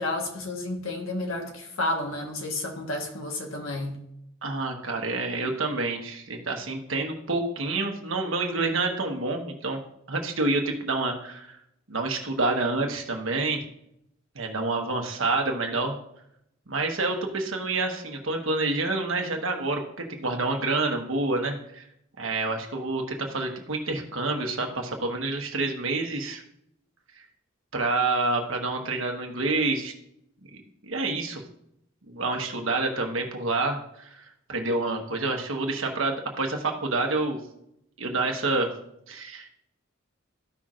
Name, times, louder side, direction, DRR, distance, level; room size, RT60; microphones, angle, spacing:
voice 1, 0.0-4.0, left 2 dB, 75° left, 2 dB, 1.3 m, -31 dB
voice 2, 4.4-9.8 10.1-11.6 11.9-13.6 14.3-16.0 16.7-19.8 20.1-21.8 22.2-26.4 27.2-27.3 27.7-29.9 30.8-31.4 32.1-34.2 34.5-37.4 38.0-38.7 39.1-39.5, right 3 dB, 70° right, 3 dB, 1.3 m, -28 dB
14.0 x 5.8 x 2.5 m, 0.77 s
head